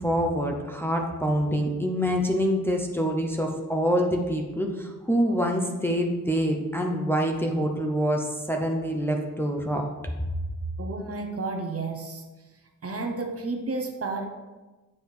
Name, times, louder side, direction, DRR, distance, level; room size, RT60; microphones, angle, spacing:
voice 1, 0.0-9.8, equal, 5° left, 1 dB, 0.7 m, -26 dB
voice 2, 10.8-12.2 12.8-14.2, right 3 dB, 45° right, 4 dB, 0.9 m, -31 dB
8.7 x 4.9 x 4.9 m, 1.2 s
wide cardioid pair, 165°, 32 cm